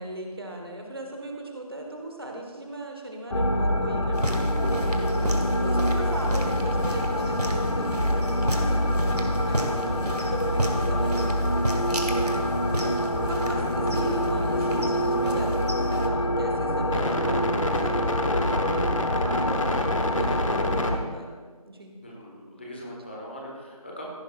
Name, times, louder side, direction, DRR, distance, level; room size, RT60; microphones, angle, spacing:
voice 1, 0.0-4.5 5.6-11.5 11.8-12.4 13.2-21.3 21.6-21.9, right 1 dB, 40° right, 2 dB, 1.3 m, -38 dB
sound 1, 3.3-21.0, left 1 dB, 55° left, 1.2 m, -25 dB
sound 2, 4.1-16.1, right 1 dB, 85° right, 2.0 m, -34 dB
sound 3, 11.1-11.6 12.3-18.1, right 1 dB, 60° right, 1.8 m, -42 dB
voice 2, 22.0-24.1, equal, 20° left, -2 dB, 1.4 m, -41 dB
15.5 x 10.5 x 2.5 m, 1.4 s
figure-of-eight pair, 170°, 19 cm